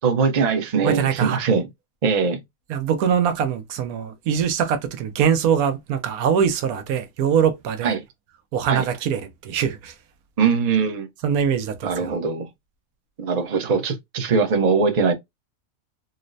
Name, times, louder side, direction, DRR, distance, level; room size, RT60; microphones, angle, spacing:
voice 1, 0.0-1.7 2.0-2.4 7.8-8.0 8.7-8.8 10.4-11.1 11.8-12.5 13.2-15.1, right 5 dB, 40° right, 0.6 m, -21 dB
voice 2, 0.8-1.4 2.7-7.9 8.5-9.9 11.2-12.1, right 8 dB, 85° right, 1.1 m, -23 dB
4.1 x 2.0 x 2.5 m
omnidirectional pair, 1.5 m